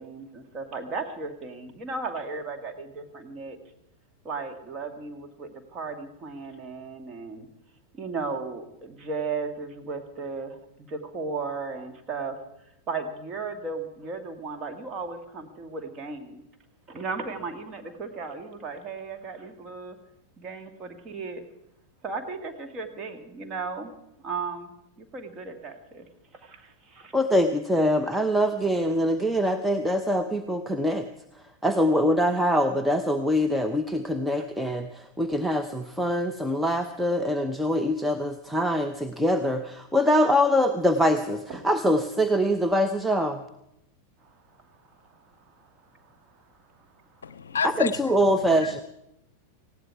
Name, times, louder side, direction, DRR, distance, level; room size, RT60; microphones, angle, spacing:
voice 1, 0.0-3.6 4.2-7.5 8.0-12.4 12.9-16.4 16.9-20.0 20.4-21.4 22.0-23.9 24.2-24.7 25.0-26.1 26.3-27.1 41.5-41.6 45.0-45.1 45.6-45.7 46.0-46.1, right 4 dB, 30° right, 6 dB, 2.0 m, -35 dB
voice 2, 27.1-31.1 31.6-43.4 47.6-48.8, equal, 5° right, 7 dB, 0.8 m, -24 dB
voice 3, 47.2-47.9 48.3-48.8, left 6 dB, 70° left, 17 dB, 0.6 m, -30 dB
19.0 x 16.0 x 4.7 m, 0.84 s
figure-of-eight pair, 90°, 0 cm